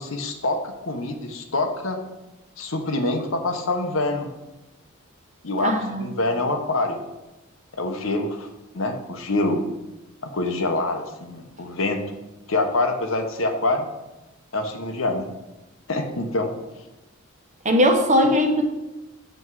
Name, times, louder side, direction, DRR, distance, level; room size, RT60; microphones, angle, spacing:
voice 1, 0.0-2.0 2.6-4.3 5.4-5.7 6.0-7.0 7.7-8.5 8.7-9.6 10.2-12.0 12.5-13.9 14.5-15.3 15.9-16.5, left 2 dB, 70° left, 5 dB, 1.1 m, -25 dB
voice 2, 5.6-6.0 17.6-18.6, equal, 35° right, 4 dB, 1.1 m, -19 dB
7.9 x 7.2 x 4.7 m, 0.99 s
head